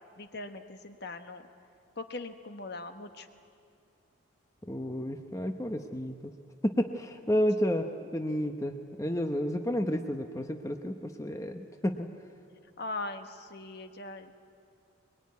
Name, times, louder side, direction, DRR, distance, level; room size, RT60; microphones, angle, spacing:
voice 1, 0.2-1.5 2.0-3.3 8.0-8.1 12.8-14.4, left 2 dB, 50° left, 8 dB, 1.3 m, -40 dB
voice 2, 4.7-6.4 6.6-12.1, equal, 15° left, 5 dB, 0.8 m, -31 dB
22.0 x 22.0 x 9.5 m, 2.4 s
head